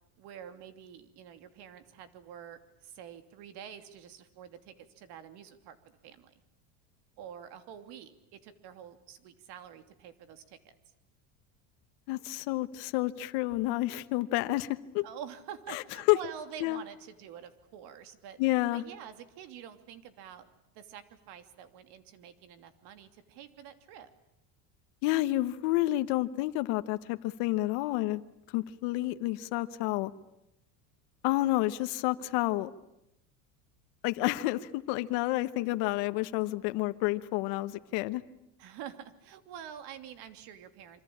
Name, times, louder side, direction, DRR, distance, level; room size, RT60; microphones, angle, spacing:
voice 1, 0.2-5.8 6.0-6.3 7.2-10.7 15.0-18.4 18.7-20.5 20.7-24.1 38.6-41.0, right 9 dB, 60° right, 9 dB, 3.0 m, -47 dB
voice 2, 12.1-15.0 15.7-15.8 16.1-16.2 16.6-16.8 18.4-18.8 25.0-28.2 28.5-30.1 31.2-32.7 34.0-38.2, left 17 dB, 70° left, 10 dB, 1.3 m, -29 dB
26.5 x 24.5 x 8.7 m, 0.87 s
supercardioid pair, 130°, 44 cm